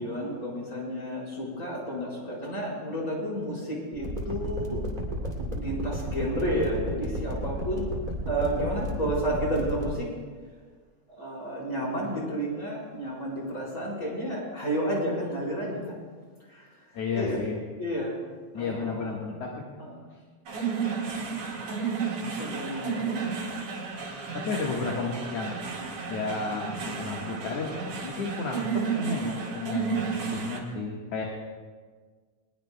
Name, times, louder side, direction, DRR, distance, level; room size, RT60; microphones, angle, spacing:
voice 1, 0.0-4.8 5.2-7.9 8.3-10.1 11.1-16.0 16.5-16.7 17.1-17.4 17.8-18.2 18.5-19.4 19.8-20.0 22.4-23.3, equal, 25° left, -5 dB, 4.8 m, -31 dB
sound 1, 3.9-9.9, right 1 dB, 15° right, 2.4 m, -32 dB
voice 2, 16.9-17.6 18.5-19.6 24.3-25.6 26.0-27.7 28.0-31.3, left 4 dB, 60° left, -2 dB, 2.4 m, -32 dB
sound 2, 20.5-30.6, right 5 dB, 70° right, 4.0 m, -32 dB
21.5 x 21.0 x 2.2 m, 1.5 s
omnidirectional pair, 3.5 m